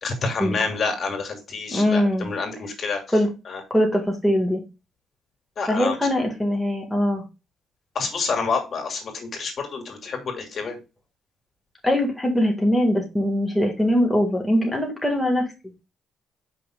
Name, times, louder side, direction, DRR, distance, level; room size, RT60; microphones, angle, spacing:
voice 1, 0.0-3.0 3.5-3.6 5.6-5.9 7.9-10.8, left 4 dB, 50° left, 3 dB, 2.6 m, -28 dB
voice 2, 1.7-2.3 3.1-3.3 3.7-4.6 5.7-7.2 11.8-15.5, left 1 dB, 5° left, 0 dB, 1.9 m, -21 dB
8.2 x 5.7 x 2.4 m, 0.28 s
cardioid pair, 90°, 0 cm